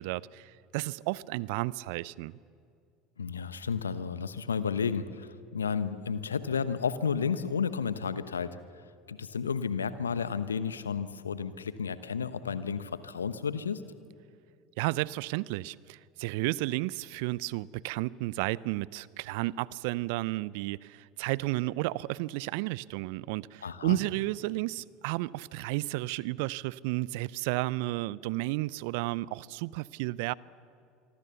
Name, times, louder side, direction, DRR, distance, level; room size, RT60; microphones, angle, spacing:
voice 1, 0.0-2.3 14.8-30.3, right 20 dB, 65° right, 0.5 m, -32 dB
voice 2, 3.2-8.6 9.1-13.8 23.6-24.0, left 6 dB, 85° left, 1.0 m, -32 dB
25.5 x 24.0 x 7.0 m
hypercardioid pair, 70°, 0 cm